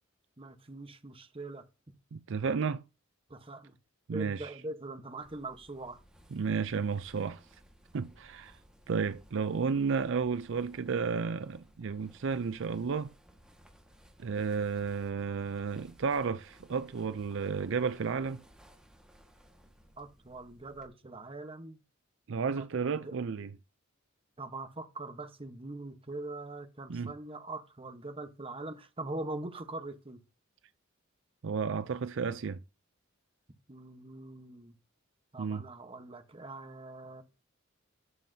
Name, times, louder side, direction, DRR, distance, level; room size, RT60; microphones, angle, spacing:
voice 1, 0.4-1.7 3.3-3.7 4.1-6.0 20.0-21.8 22.6-22.7 22.9-23.2 24.4-30.2 33.7-34.8 35.3-37.2, right 2 dB, 30° right, 1.1 m, -42 dB
voice 2, 2.1-2.8 4.1-4.5 6.3-7.4 7.9-8.6 8.9-13.1 14.2-18.4 22.3-23.5 26.9-27.1 31.4-32.6 35.4-35.6, right 5 dB, 65° right, 0.5 m, -32 dB
sound 1, 5.2-20.9, equal, 5° right, 1.7 m, -60 dB
11.0 x 7.3 x 2.8 m
head